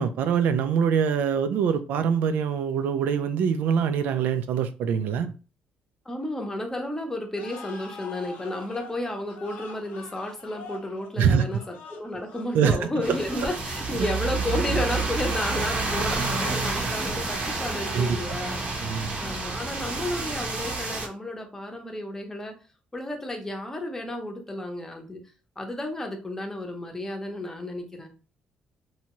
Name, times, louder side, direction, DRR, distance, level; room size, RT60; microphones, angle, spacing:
voice 1, 0.0-5.3 11.2-11.4 12.5-12.8 13.1-13.2 13.9-14.1 17.9-18.2 18.8-19.2, right 7 dB, 80° right, 10 dB, 0.4 m, -24 dB
voice 2, 6.1-18.7 19.2-22.6 22.9-25.2 25.6-28.1, left 1 dB, 15° left, 3 dB, 0.7 m, -32 dB
sound 1, 7.3-15.2, left 4 dB, 90° left, 0.6 m, -45 dB
sound 2, 13.0-21.1, right 3 dB, 45° right, 0.7 m, -29 dB
2.7 x 2.3 x 2.9 m, 0.35 s
cardioid pair, 110°, 3 cm